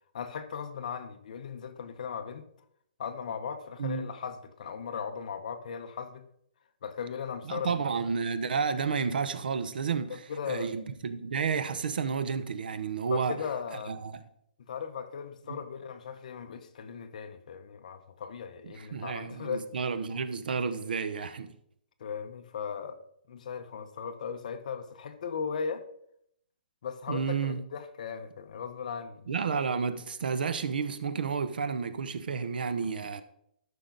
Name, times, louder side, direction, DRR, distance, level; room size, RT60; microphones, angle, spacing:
voice 1, 0.1-2.4 3.0-6.3 6.8-7.9 10.1-10.7 13.1-14.0 14.6-19.7 22.0-23.0 23.3-25.8 26.8-29.3, left 6 dB, 45° left, 0.9 m, -37 dB
voice 2, 7.4-13.3 13.9-14.2 15.5-15.6 18.8-21.5 27.1-27.6 29.3-33.2, right 5 dB, 65° right, 0.9 m, -31 dB
13.0 x 5.8 x 4.0 m
hypercardioid pair, 170°, 5 cm